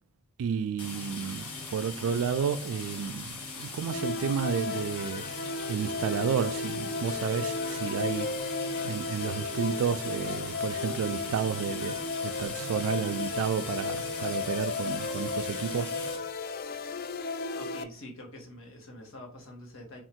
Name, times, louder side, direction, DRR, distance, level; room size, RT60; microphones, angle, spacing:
voice 1, 0.4-5.2 5.7-8.3 8.8-15.9, right 7 dB, 65° right, 0.3 m, -31 dB
sound 1, 0.8-16.2, left 3 dB, 80° left, 1.1 m, -41 dB
sound 2, 3.9-17.8, left 3 dB, 45° left, 0.3 m, -34 dB
voice 2, 17.5-20.0, left 1 dB, 65° left, 1.2 m, -46 dB
3.6 x 2.4 x 4.3 m
head